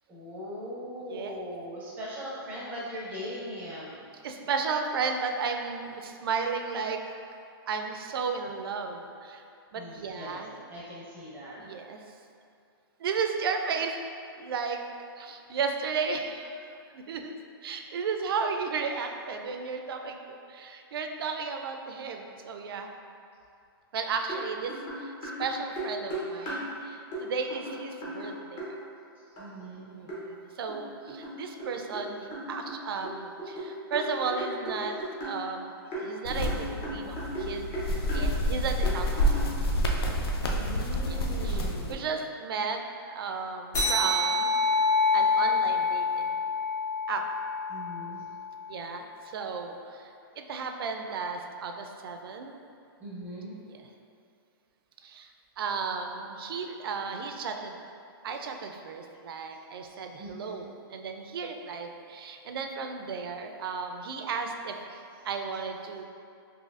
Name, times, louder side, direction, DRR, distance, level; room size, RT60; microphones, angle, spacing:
voice 1, 0.1-4.1 9.7-10.4 10.6-11.6 29.4-30.0 40.5-42.1 47.7-48.2 53.0-53.6 60.2-60.6, equal, 15° right, -6 dB, 0.6 m, -40 dB
voice 2, 4.2-7.0 7.7-9.4 9.7-10.5 11.6-12.2 13.0-13.9 14.4-14.8 15.2-17.3 17.6-22.9 23.9-28.7 29.9-37.9 38.1-39.3 41.1-42.8 43.0-44.6 45.1-46.4 47.1-47.2 48.7-52.6 53.6-53.9 55.0-57.7 58.2-66.0, right 5 dB, 70° right, 4 dB, 0.4 m, -34 dB
sound 1, 24.3-24.4 24.7-26.7 27.1-27.2 27.5-28.7 29.4-29.5 30.1-30.2 30.7-32.1 32.3-35.4 35.9-37.5 37.7-38.3 38.8-39.5, right 1 dB, 25° left, 0.7 m, -36 dB
sound 2, 36.3-41.9, equal, 75° left, 0.5 m, -28 dB
sound 3, 43.7-48.7, left 3 dB, 50° left, 1.1 m, -27 dB
4.0 x 2.7 x 2.4 m, 2.5 s
hypercardioid pair, 155°, 13 cm